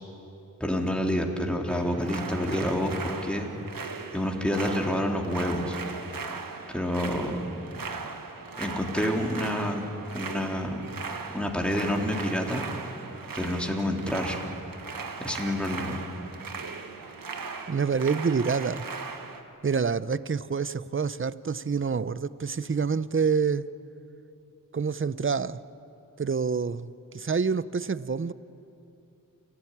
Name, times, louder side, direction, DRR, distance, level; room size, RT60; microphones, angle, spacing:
voice 1, 0.6-3.5 4.1-5.8 6.7-7.5 8.6-9.8 10.1-10.8 11.3-12.7 13.3-14.4 15.2-16.0, left 1 dB, 5° left, 1 dB, 3.4 m, -28 dB
sound 1, 1.7-19.4, right 4 dB, 85° right, 1.5 m, -38 dB
voice 2, 17.7-18.9 19.6-23.7 24.7-25.6 26.2-28.3, right 5 dB, 40° right, 16 dB, 0.7 m, -27 dB
29.0 x 13.5 x 9.9 m, 2.8 s
cardioid pair, 40°, 33 cm